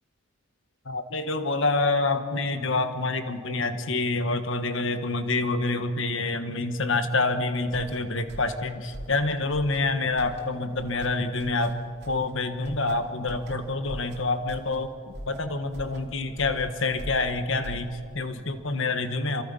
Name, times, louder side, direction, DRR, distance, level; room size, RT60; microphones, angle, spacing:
voice 1, 0.8-11.7 12.1-14.9 15.3-19.4, left 3 dB, 55° left, 8 dB, 1.5 m, -27 dB
sound 1, 7.6-18.3, equal, 50° right, 2.7 m, -43 dB
28.5 x 24.0 x 5.6 m, 2.3 s
head